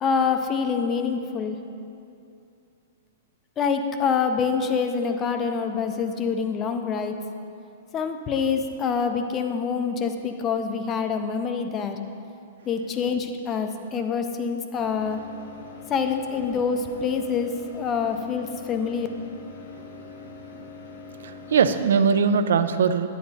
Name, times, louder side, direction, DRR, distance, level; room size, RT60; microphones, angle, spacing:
voice 1, 0.0-1.6 3.6-7.2 7.9-12.0 12.7-15.2 15.9-19.1, left 5 dB, 15° left, 7 dB, 0.4 m, -26 dB
sound 1, 14.8-21.9, left 5 dB, 55° left, 0.7 m, -43 dB
voice 2, 20.0-20.7 21.0-23.1, right 6 dB, 75° right, 11 dB, 0.4 m, -22 dB
9.9 x 9.7 x 2.7 m, 2.6 s
hypercardioid pair, 175°, 0 cm